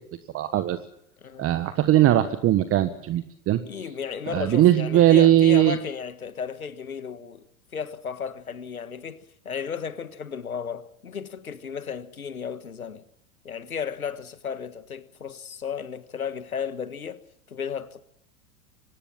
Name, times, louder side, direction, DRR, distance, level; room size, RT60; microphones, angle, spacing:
voice 1, 0.3-0.8 1.4-3.6 4.3-5.8, right 13 dB, 30° right, 1.4 m, -19 dB
voice 2, 3.6-7.4 7.7-13.0 13.4-17.2 17.5-18.0, left 7 dB, 85° left, 1.6 m, -34 dB
24.5 x 18.5 x 7.3 m
figure-of-eight pair, 90°, 42 cm